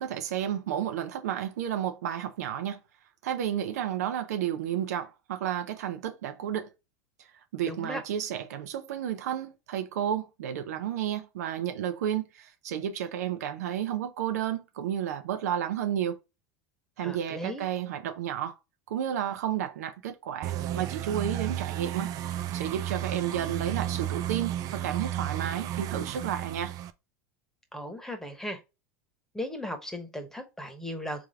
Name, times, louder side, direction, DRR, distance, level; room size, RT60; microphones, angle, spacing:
voice 1, 0.0-2.8 3.2-6.7 7.5-16.2 17.0-18.6 18.9-22.1 22.5-26.7, right 10 dB, 85° right, 0.7 m, -32 dB
voice 2, 7.6-8.0 17.0-17.6 27.7-28.6 29.3-31.3, left 1 dB, 5° left, 1.1 m, -37 dB
sound 1, 20.4-26.9, right 12 dB, 45° right, 0.5 m, -33 dB
3.6 x 3.4 x 3.5 m
supercardioid pair, 110°, 8 cm